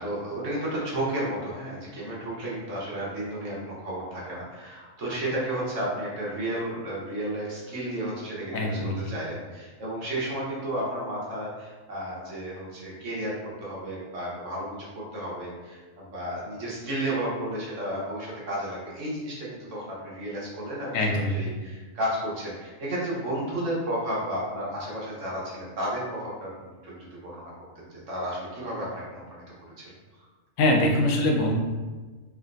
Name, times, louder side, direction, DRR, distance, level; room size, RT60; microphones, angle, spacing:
voice 1, 0.0-14.9 15.1-29.4 29.8-29.9, right 1 dB, 70° right, -6 dB, 1.4 m, -33 dB
voice 2, 8.5-8.9 20.9-21.3 30.6-31.5, left 1 dB, 85° left, 1 dB, 1.1 m, -23 dB
3.6 x 3.4 x 2.5 m, 1.3 s
omnidirectional pair, 1.3 m